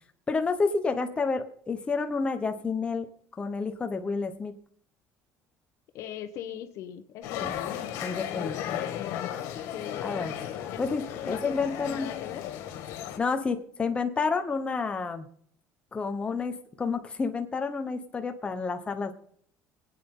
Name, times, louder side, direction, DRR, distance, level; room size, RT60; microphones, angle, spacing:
voice 1, 0.3-3.1 3.4-4.6 7.4-7.6 8.0-8.8 10.0-10.3 10.8-12.1 13.2-15.3 15.9-19.1, left 4 dB, 20° left, 6 dB, 1.1 m, -30 dB
voice 2, 5.9-9.3 9.7-10.1 10.7-10.8 11.2-12.5, left 10 dB, 65° left, 8 dB, 1.0 m, -41 dB
sound 1, 7.2-13.2, left 10 dB, 80° left, 2.0 m, -35 dB
25.5 x 9.1 x 3.8 m, 0.65 s
cardioid pair, 140°, 6 cm